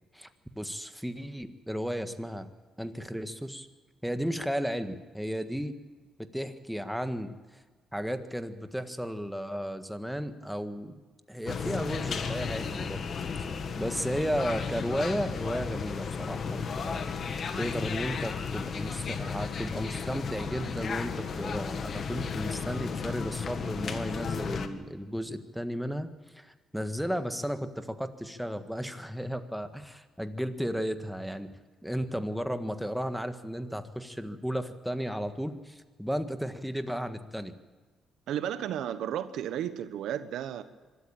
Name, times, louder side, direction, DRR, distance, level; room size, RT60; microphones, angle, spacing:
voice 1, 0.6-2.5 2.8-3.7 4.0-5.8 6.2-7.3 7.9-11.0 11.3-13.0 13.4-13.5 13.8-26.1 26.3-31.5 31.8-37.6, equal, ahead, 9 dB, 1.6 m, -34 dB
sound 1, 11.5-24.7, left 6 dB, 55° left, 1.7 m, -34 dB
voice 2, 38.3-40.6, right 10 dB, 80° right, 11 dB, 1.2 m, -33 dB
24.0 x 13.0 x 8.8 m, 1.4 s
cardioid pair, 90°, 0 cm